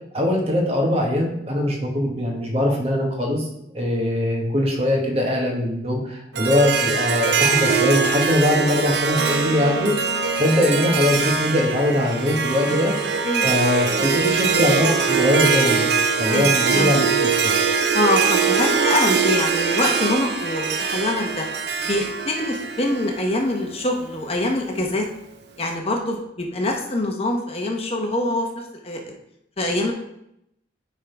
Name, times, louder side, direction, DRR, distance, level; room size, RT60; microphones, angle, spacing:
voice 1, 0.1-3.5 3.7-9.9 10.4-12.9 13.4-15.9 16.2-17.5, left 1 dB, 35° right, 0 dB, 1.5 m, -21 dB
Harp, 6.3-23.6, right 5 dB, 65° right, 0.6 m, -22 dB
voice 2, 12.7-13.5 13.9-14.1 16.3-16.9 17.9-21.4 21.8-25.1 25.6-28.5 28.8-29.1 29.6-29.9, left 1 dB, 35° left, 2 dB, 0.9 m, -24 dB
9.7 x 3.7 x 4.6 m, 0.79 s
head